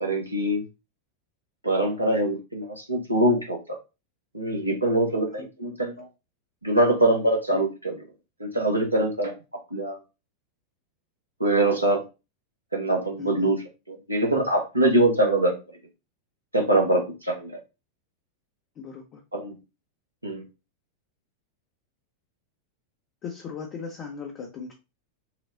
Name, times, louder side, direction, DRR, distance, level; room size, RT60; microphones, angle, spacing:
voice 1, 0.0-0.6 1.6-3.8 4.3-6.1 6.6-8.0 8.4-9.3 9.7-10.0 11.4-12.0 12.7-15.6 16.5-17.5 19.3-19.5 20.2-20.4, right 1 dB, 85° right, 2 dB, 0.8 m, -23 dB
voice 2, 13.2-13.5 18.8-19.2 23.2-24.7, left 6 dB, 35° left, 0 dB, 0.7 m, -37 dB
5.8 x 2.0 x 2.6 m, 0.28 s
figure-of-eight pair, 90°, 0 cm